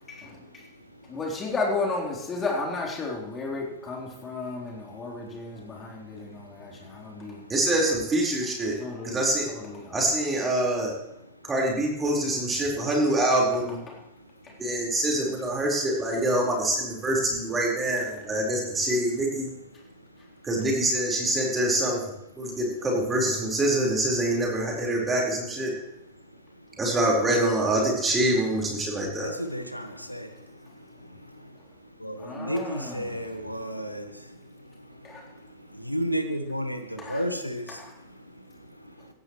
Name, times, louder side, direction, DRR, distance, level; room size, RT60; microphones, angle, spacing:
voice 1, 0.1-0.7 1.1-7.4 8.8-10.0 13.9-14.0 14.4-14.5 32.2-33.2 35.0-35.2 37.0-37.2 37.7-37.9, left 3 dB, 20° left, -1 dB, 3.8 m, -34 dB
voice 2, 7.5-8.7 9.0-9.5 9.9-10.9 11.4-13.8 14.6-19.5 20.4-25.7 26.8-29.3, right 1 dB, 15° right, -2 dB, 4.5 m, -25 dB
voice 3, 29.2-30.3 32.0-34.1 35.8-37.8, equal, 90° left, 7 dB, 1.4 m, -31 dB
16.5 x 15.5 x 3.2 m, 0.85 s
figure-of-eight pair, 90°, 0 cm